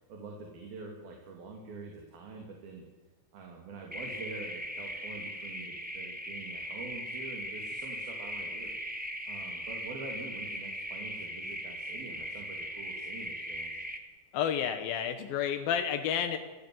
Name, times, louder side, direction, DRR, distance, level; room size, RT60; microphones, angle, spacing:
voice 1, 0.0-2.8 3.3-8.8 9.3-13.7, right 3 dB, 90° right, 1 dB, 4.8 m, -45 dB
sound 1, 3.9-14.0, equal, 5° right, 1.6 m, -39 dB
voice 2, 14.3-16.4, left 8 dB, 85° left, 7 dB, 3.1 m, -30 dB
26.5 x 17.5 x 7.9 m, 1.3 s
omnidirectional pair, 4.1 m